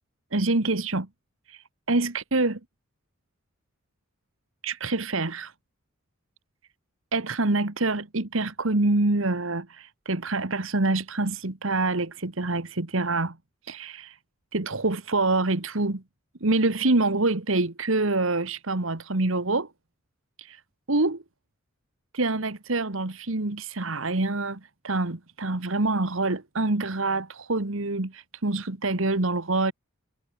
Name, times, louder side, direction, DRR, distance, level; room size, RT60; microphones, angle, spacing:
voice 1, 0.3-1.1 1.5-2.6 4.6-5.5 7.1-13.4 13.7-14.2 14.5-16.0 16.4-19.7 20.4-20.6 20.9-21.2 22.1-29.7, right 2 dB, 70° right, 1.6 m, -26 dB
head